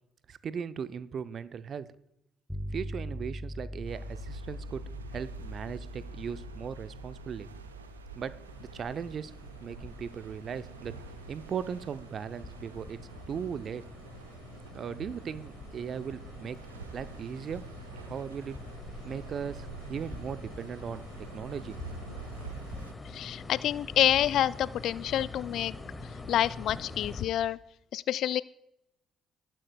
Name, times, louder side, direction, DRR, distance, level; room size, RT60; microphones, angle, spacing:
voice 1, 0.3-1.9 2.7-7.5 8.1-9.3 9.6-11.0 11.3-13.0 13.3-13.8 14.7-16.6 16.9-17.7 18.1-18.6 19.0-21.8, right 7 dB, 50° right, 14 dB, 0.6 m, -38 dB
sound 1, 2.5-11.5, equal, ahead, 0.7 m, -43 dB
sound 2, 3.9-22.9, right 5 dB, 85° right, 0.7 m, -47 dB
sound 3, 8.4-27.2, left 3 dB, 25° left, 2.0 m, -45 dB
voice 2, 23.1-25.7 26.3-27.6 27.9-28.4, left 11 dB, 60° left, 19 dB, 0.3 m, -27 dB
19.0 x 9.1 x 2.3 m, 0.81 s
figure-of-eight pair, 45°, 0 cm